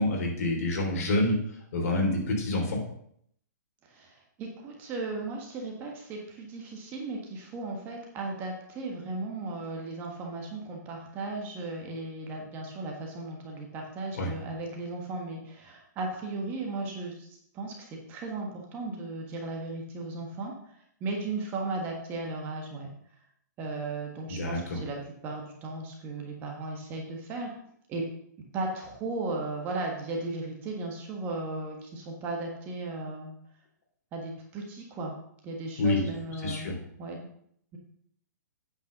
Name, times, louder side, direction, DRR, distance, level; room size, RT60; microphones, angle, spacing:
voice 1, 0.0-1.4 1.7-2.8 14.1-14.3 24.3-24.8 35.8-36.0 36.4-36.7, left 2 dB, 50° left, 0 dB, 3.3 m, -27 dB
voice 2, 3.8-17.3 17.5-20.7 21.0-22.9 23.6-27.5 27.9-28.0 28.5-33.3 34.1-35.1 35.4-36.7 37.0-37.3, right 3 dB, 20° right, 0 dB, 1.5 m, -36 dB
8.9 x 5.4 x 6.6 m, 0.68 s
hypercardioid pair, 165°, 10 cm